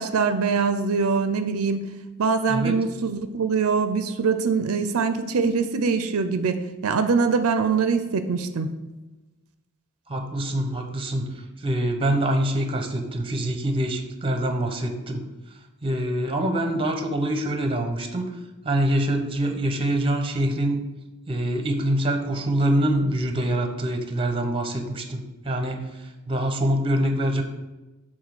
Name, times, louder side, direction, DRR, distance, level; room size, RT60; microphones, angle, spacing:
voice 1, 0.0-1.8 2.2-8.7, right 5 dB, 75° right, 9 dB, 0.5 m, -23 dB
voice 2, 10.1-15.3 15.8-18.3 18.6-20.8 21.3-27.4, right 1 dB, 25° right, 5 dB, 0.8 m, -25 dB
7.3 x 3.7 x 6.3 m, 1.1 s
head